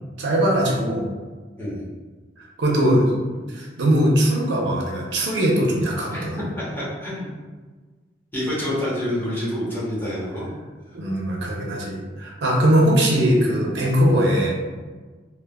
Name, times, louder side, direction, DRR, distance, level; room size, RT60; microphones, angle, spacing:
voice 1, 0.2-1.0 2.6-6.4 10.9-14.6, equal, 70° right, -2 dB, 0.6 m, -20 dB
voice 2, 1.6-1.9 6.1-6.3 6.6-7.3 8.3-10.5, left 1 dB, 10° left, -9 dB, 0.8 m, -27 dB
3.3 x 2.1 x 2.2 m, 1.4 s
head